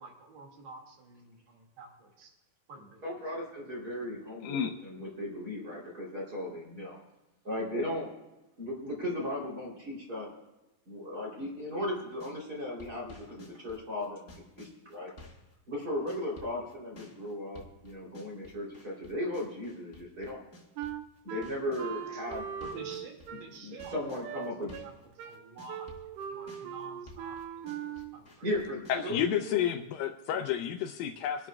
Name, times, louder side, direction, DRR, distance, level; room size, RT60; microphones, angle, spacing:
voice 1, 0.0-2.3 2.7-3.0 22.0-22.2 22.6-24.9 25.2-25.9 26.3-28.5, right 3 dB, 50° right, 0 dB, 3.1 m, -49 dB
voice 2, 3.0-7.0 7.4-8.1 8.6-10.3 10.9-15.1 15.7-20.4 21.2-22.4 23.6-24.7 28.4-29.6 30.3-30.4, left 1 dB, 25° right, -4 dB, 3.4 m, -36 dB
voice 3, 4.4-4.7 28.9-31.5, left 9 dB, 90° left, 6 dB, 2.0 m, -31 dB
sound 1, 12.1-12.4 12.8-21.9 22.3-25.0 25.3-29.0, left 2 dB, 60° left, 0.7 m, -53 dB
Wind instrument woodwind instrument, 20.8-28.2, right 9 dB, 80° right, 2.6 m, -40 dB
26.5 x 12.0 x 2.4 m, 1.0 s
omnidirectional pair, 4.8 m